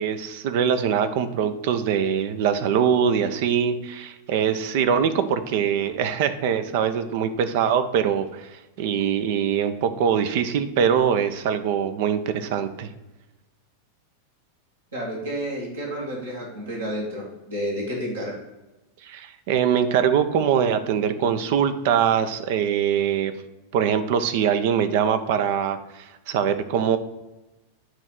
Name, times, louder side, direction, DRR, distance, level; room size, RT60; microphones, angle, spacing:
voice 1, 0.0-12.9 19.0-23.3 23.7-27.0, right 8 dB, 50° right, 10 dB, 0.6 m, -23 dB
voice 2, 14.9-18.3, equal, 70° right, -3 dB, 2.1 m, -30 dB
8.8 x 3.3 x 5.7 m, 1.0 s
figure-of-eight pair, 90°, 0 cm